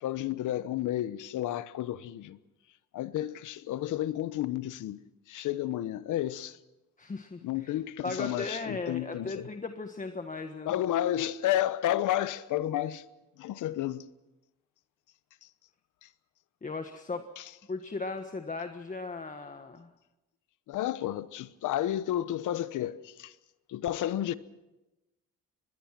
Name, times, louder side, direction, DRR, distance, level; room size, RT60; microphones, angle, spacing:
voice 1, 0.0-2.4 2.9-5.0 5.3-6.6 7.4-9.5 10.7-13.0 13.4-14.0 16.0-16.1 17.4-17.5 20.7-23.3 23.7-24.3, left 13 dB, 80° left, 1.1 m, -31 dB
voice 2, 7.0-7.7 8.0-10.8 16.6-17.2 17.7-19.9, left 3 dB, 25° left, 1.5 m, -37 dB
24.5 x 21.0 x 6.0 m
cardioid pair, 90°, 30 cm